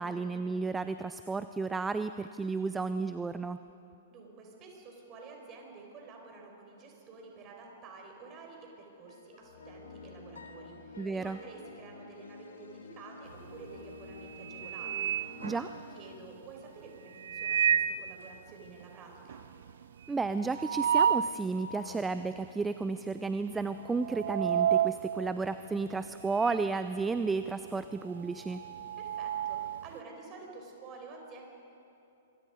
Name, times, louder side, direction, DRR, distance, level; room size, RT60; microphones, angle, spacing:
voice 1, 0.0-3.6 11.0-11.4 15.4-15.7 20.1-28.6, right 4 dB, 10° right, 12 dB, 0.5 m, -33 dB
voice 2, 4.1-15.6 15.9-19.4 29.0-31.4, right 4 dB, 30° right, 1 dB, 5.7 m, -50 dB
sound 1, 9.1-16.2, left 3 dB, 75° left, 2.3 m, -49 dB
sound 2, 13.3-13.7 14.1-16.2 17.1-18.1 18.5-18.6 18.8-18.9 19.3-21.4 21.9-22.0 22.8-23.1 23.4-26.7 27.0-29.9, right 9 dB, 65° right, 0.6 m, -31 dB
25.0 x 23.5 x 5.4 m, 2.8 s
figure-of-eight pair, 110°, 0 cm